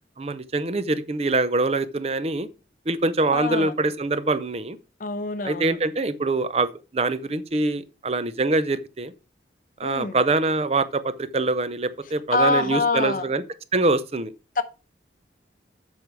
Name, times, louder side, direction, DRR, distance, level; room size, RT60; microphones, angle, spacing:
voice 1, 0.2-2.5 2.9-4.8 5.4-9.1 9.8-13.4 13.7-14.3, right 3 dB, 35° right, 0.6 m, -24 dB
voice 2, 3.3-3.7 5.0-5.8 9.8-10.2 12.3-13.2 14.6-14.7, left 3 dB, 45° left, 0.7 m, -25 dB
8.1 x 5.5 x 4.6 m
head